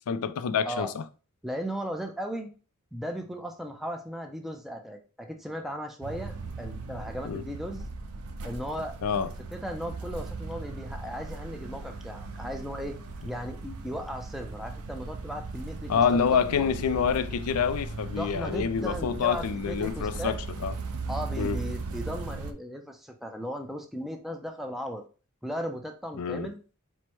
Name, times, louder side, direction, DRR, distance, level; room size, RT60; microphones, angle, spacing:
voice 1, 0.1-1.0 7.2-7.4 9.0-9.3 15.9-20.7 21.4-21.6 26.2-26.5, left 6 dB, 80° left, 0.4 m, -27 dB
voice 2, 1.4-2.5 2.9-7.8 8.4-9.0 9.5-13.0 13.2-16.2 16.6-16.7 18.2-20.3 21.1-25.0 25.4-26.6, equal, ahead, 0.4 m, -36 dB
sound 1, 6.0-22.5, right 3 dB, 80° right, 0.6 m, -38 dB
4.5 x 2.1 x 4.3 m
head